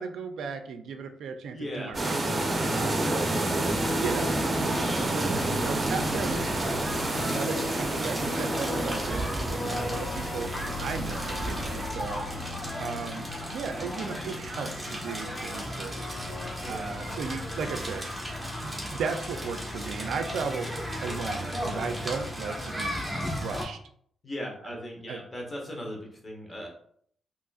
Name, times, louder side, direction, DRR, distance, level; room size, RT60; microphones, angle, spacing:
voice 1, 0.0-3.3 3.9-6.6 7.2-10.5 10.8-12.2 12.8-16.1 16.6-18.1 18.6-20.7 21.0-23.0 23.3-23.8 25.1-25.2, right 5 dB, 80° right, 8 dB, 0.4 m, -36 dB
voice 2, 1.5-1.9 3.0-3.6 9.6-9.9 16.6-16.9 24.2-26.7, equal, 35° left, 0 dB, 1.2 m, -38 dB
sound 1, 1.9-18.5, left 2 dB, 75° left, 0.9 m, -39 dB
sound 2, 1.9-11.9, right 2 dB, 30° right, 0.7 m, -29 dB
Crackle, 4.6-23.6, equal, 5° right, 1.2 m, -35 dB
3.7 x 2.9 x 2.4 m, 0.63 s
cardioid pair, 75°, 0 cm